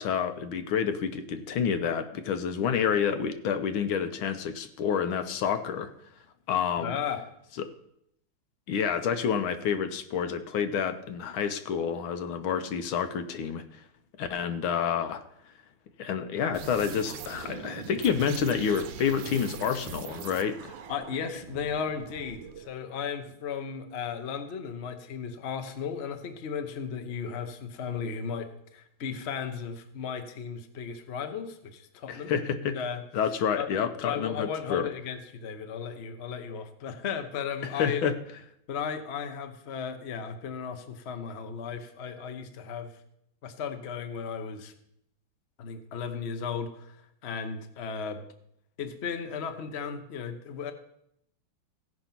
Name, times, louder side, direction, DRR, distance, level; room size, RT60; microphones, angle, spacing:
voice 1, 0.0-5.9 6.5-7.0 7.6-7.7 8.7-13.8 14.2-15.2 16.0-20.8 32.1-32.8 33.1-34.9 37.7-38.2, left 7 dB, 75° left, 9 dB, 1.6 m, -29 dB
voice 2, 6.8-7.2 20.9-32.3 32.7-33.0 33.6-33.7 34.0-38.0 38.7-43.0 43.4-44.7 45.6-48.2 48.8-50.7, left 6 dB, 45° left, 7 dB, 0.8 m, -35 dB
sound 1, 16.5-22.7, right 7 dB, 70° right, 1.4 m, -42 dB
16.0 x 5.4 x 5.8 m, 0.74 s
omnidirectional pair, 2.3 m